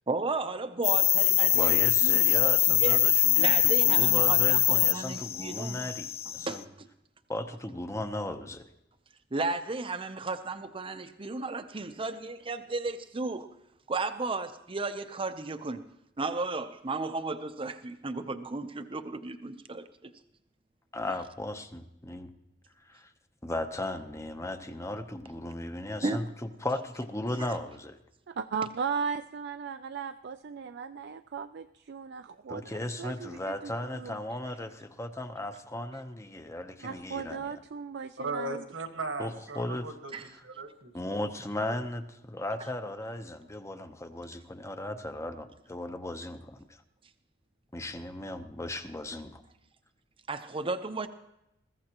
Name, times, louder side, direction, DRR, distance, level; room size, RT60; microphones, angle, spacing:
voice 1, 0.1-1.7 2.0-2.5 2.8-3.0 3.4-4.6 4.9-5.9 6.4-6.9 9.3-13.5 13.9-15.8 16.2-20.1 26.0-26.2 27.4-27.5 40.1-40.2 50.3-51.1, right 3 dB, 30° right, 9 dB, 0.7 m, -34 dB
sound 1, 0.8-6.6, left 13 dB, 30° left, 0.4 m, -23 dB
voice 2, 1.5-6.6 7.3-8.7 20.9-22.3 22.8-23.1 23.4-28.0 32.5-37.5 39.2-39.9 40.2-40.4 40.9-46.6 47.7-49.4, left 1 dB, 15° left, 7 dB, 0.8 m, -36 dB
voice 3, 28.3-34.2 36.8-38.6, right 6 dB, 60° right, 9 dB, 0.4 m, -37 dB
voice 4, 38.2-40.1 40.4-41.2 41.6-41.7, right 3 dB, 85° right, 5 dB, 1.7 m, -37 dB
21.0 x 15.0 x 3.0 m, 0.86 s
head